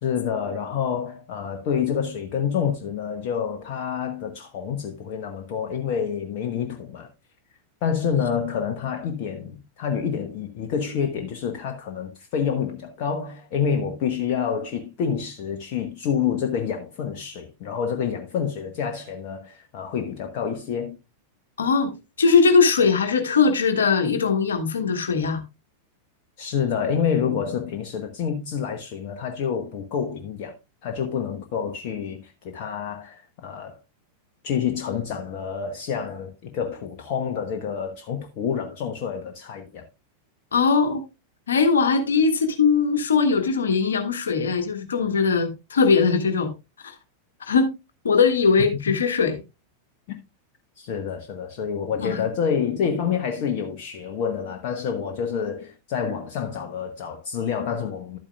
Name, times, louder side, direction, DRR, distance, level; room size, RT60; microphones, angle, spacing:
voice 1, 0.0-7.1 7.8-21.0 26.4-30.6 30.8-33.8 34.4-39.9 50.1-50.2 50.8-58.2, left 7 dB, 45° left, 1.0 m, -28 dB
voice 2, 21.6-25.4 40.5-41.0 41.5-46.5 46.8-46.9 47.5-47.7 48.0-49.4 52.0-52.2, left 5 dB, 70° left, 1.5 m, -20 dB
11.5 x 8.7 x 2.3 m
figure-of-eight pair, 90°, 0 cm